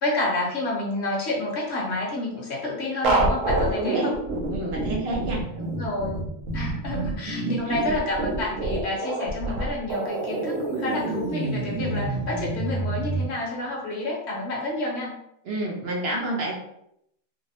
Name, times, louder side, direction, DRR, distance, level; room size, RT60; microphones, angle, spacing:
voice 1, 0.0-4.1 5.6-6.2 6.5-15.1, left 2 dB, 65° left, -3 dB, 1.0 m, -29 dB
sound 1, 3.0-13.2, right 2 dB, 90° right, 1.0 m, -27 dB
voice 2, 3.8-4.1 4.5-5.4 7.2-8.0 15.4-16.5, right 1 dB, 65° right, -2 dB, 0.8 m, -29 dB
2.6 x 2.0 x 2.7 m, 0.77 s
omnidirectional pair, 1.3 m